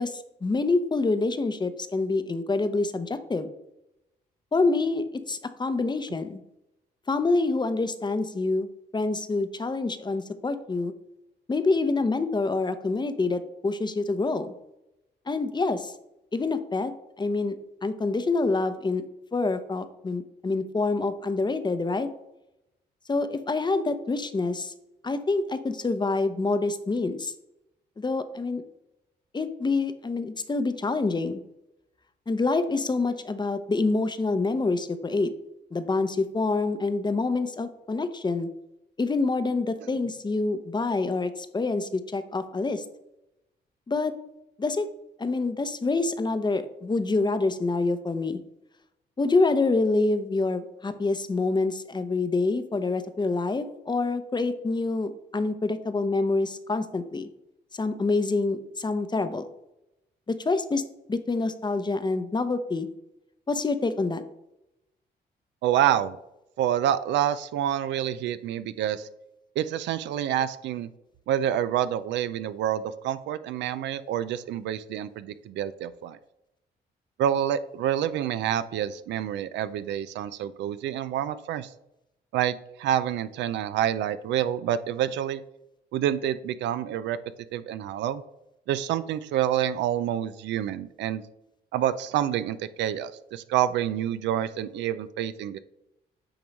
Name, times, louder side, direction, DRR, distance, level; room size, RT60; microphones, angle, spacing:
voice 1, 0.0-3.5 4.5-6.4 7.1-10.9 11.5-14.5 15.3-15.9 16.3-16.9 17.2-17.6 17.8-19.0 19.3-22.1 23.1-24.7 25.0-27.3 28.0-28.6 29.3-31.4 32.3-35.3 35.7-38.5 39.0-42.8 43.9-44.1 44.6-44.9 45.2-48.4 49.2-57.3 57.7-59.5 60.3-60.8 61.1-62.9 63.5-64.2, left 3 dB, 25° left, 11 dB, 0.7 m, -26 dB
voice 2, 65.6-66.2 66.6-69.1 69.6-70.9 71.3-76.2 77.2-81.7 82.3-85.4 85.9-87.2 87.5-88.2 88.7-91.2 91.7-95.6, right 10 dB, 85° right, 14 dB, 0.4 m, -27 dB
8.9 x 3.1 x 5.1 m, 0.88 s
cardioid pair, 75°, 18 cm